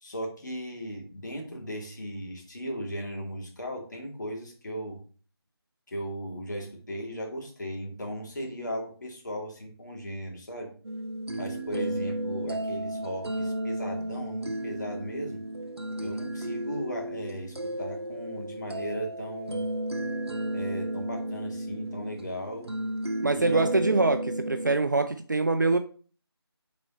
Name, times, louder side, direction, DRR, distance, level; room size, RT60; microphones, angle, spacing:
voice 1, 0.0-5.0 5.9-10.7 11.3-15.4 16.0-19.7 20.5-22.7 23.3-23.9, equal, 45° left, 0 dB, 2.1 m, -37 dB
sound 1, 10.8-24.8, right 1 dB, 75° right, 0.9 m, -33 dB
voice 2, 23.2-25.8, right 3 dB, 45° right, 8 dB, 0.5 m, -24 dB
6.1 x 4.1 x 4.2 m, 0.41 s
figure-of-eight pair, 165°, 13 cm